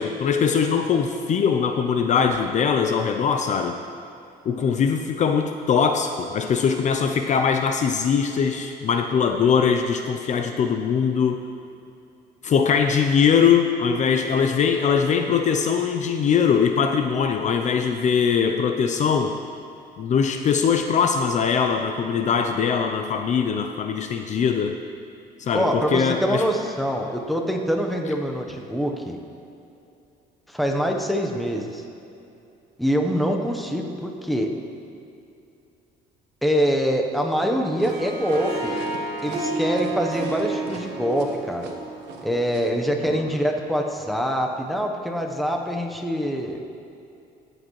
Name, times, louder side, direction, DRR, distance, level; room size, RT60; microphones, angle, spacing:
voice 1, 0.0-3.7 4.5-11.4 12.4-19.4 20.0-24.8 25.4-26.4 43.0-43.2, left 6 dB, 45° left, 5 dB, 0.5 m, -21 dB
voice 2, 25.5-29.2 30.5-31.8 32.8-34.5 36.4-38.8 39.2-41.7 42.2-46.6, equal, ahead, 2 dB, 0.9 m, -24 dB
Harp, 37.7-42.9, right 2 dB, 40° right, 2.7 m, -31 dB
sound 1, 37.8-42.7, right 5 dB, 85° right, 1.1 m, -42 dB
16.0 x 7.9 x 3.1 m, 2.7 s
cardioid pair, 110°, 17 cm